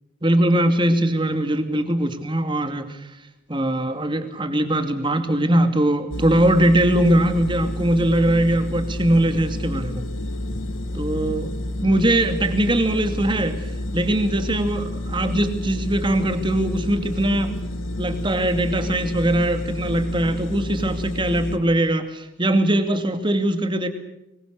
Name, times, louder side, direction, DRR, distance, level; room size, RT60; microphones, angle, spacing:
voice 1, 0.2-3.0 3.5-10.1 10.9-11.5 11.8-13.7 13.9-17.5 18.0-23.9, right 1 dB, 25° right, 8 dB, 2.5 m, -21 dB
sound 1, 6.1-21.6, left 1 dB, 80° left, 2.4 m, -30 dB
25.0 x 23.0 x 6.7 m, 0.88 s
head